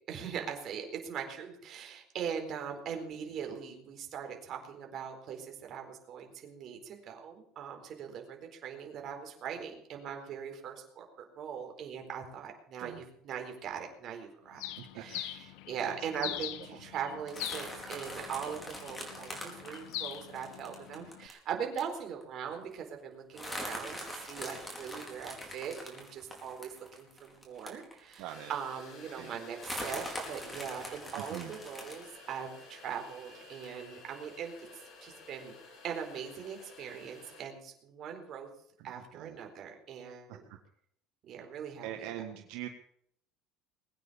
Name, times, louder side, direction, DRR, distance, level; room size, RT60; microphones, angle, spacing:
voice 1, 0.1-34.7 35.0-35.6 35.8-38.5 38.8-40.4 41.2-42.1, right 7 dB, 45° right, 3 dB, 4.3 m, -41 dB
Bird, 14.6-21.3, left 14 dB, 85° left, 1.5 m, -43 dB
voice 2, 14.8-15.2 16.7-16.8 28.2-28.5 29.1-29.4 31.1-31.5 38.8-39.4 40.3-40.6 41.8-42.7, right 12 dB, 75° right, 5 dB, 1.6 m, -43 dB
sound 1, 17.3-21.3 21.8-21.9 22.2-22.3 22.5-22.8 23.3-28.3 28.8-28.9 29.6-32.0, equal, 5° left, 4.4 m, -43 dB
sound 2, 28.3-37.5, left 4 dB, 40° left, 5.9 m, -53 dB
21.5 x 9.3 x 6.9 m, 0.70 s
cardioid pair, 150°, 0 cm